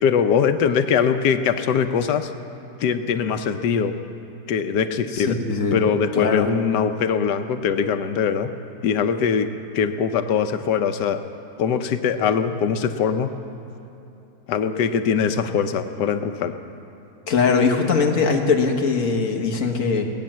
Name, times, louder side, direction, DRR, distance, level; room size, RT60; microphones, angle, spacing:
voice 1, 0.0-2.3 2.8-3.9 4.5-5.4 5.7-8.5 8.8-9.5 9.7-11.2 11.6-13.3 14.5-16.5, left 7 dB, 85° left, 9 dB, 1.3 m, -22 dB
voice 2, 5.1-5.9 6.2-6.5 17.3-20.1, left 4 dB, 55° left, 3 dB, 1.6 m, -21 dB
19.5 x 9.1 x 7.4 m, 2.9 s
omnidirectional pair, 1.7 m